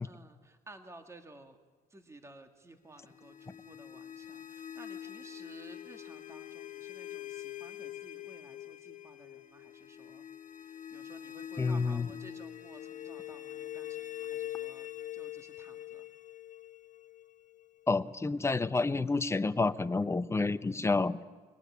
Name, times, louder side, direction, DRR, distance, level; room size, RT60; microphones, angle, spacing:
voice 1, 0.0-1.6 1.9-10.3 10.6-16.1, right 2 dB, 15° right, 5 dB, 2.2 m, -55 dB
sound 1, 3.0-17.9, left 12 dB, 50° left, 1.7 m, -44 dB
voice 2, 11.6-12.1 17.9-21.2, left 3 dB, 15° left, 11 dB, 0.9 m, -29 dB
24.0 x 18.5 x 9.8 m, 1.4 s
cardioid pair, 110°, 17 cm